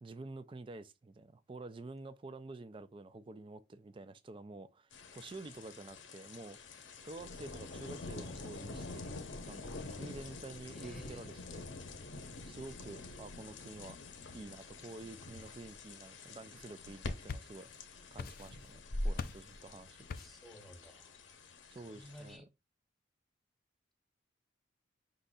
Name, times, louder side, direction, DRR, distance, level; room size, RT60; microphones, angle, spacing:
voice 1, 0.0-6.6 7.0-9.1 9.5-11.7 12.4-14.0 14.3-17.7 18.1-20.0 21.7-22.5, right 2 dB, 25° right, 0.3 m, -49 dB
sound 1, 4.9-22.4, left 2 dB, 75° left, 0.8 m, -46 dB
voice 2, 10.7-11.3 20.2-21.1 21.9-22.4, equal, ahead, 0.9 m, -53 dB
sound 2, 16.9-17.8 18.2-18.8 19.2-19.5 20.1-20.5, left 5 dB, 50° left, 0.4 m, -43 dB
5.3 x 3.9 x 2.3 m
head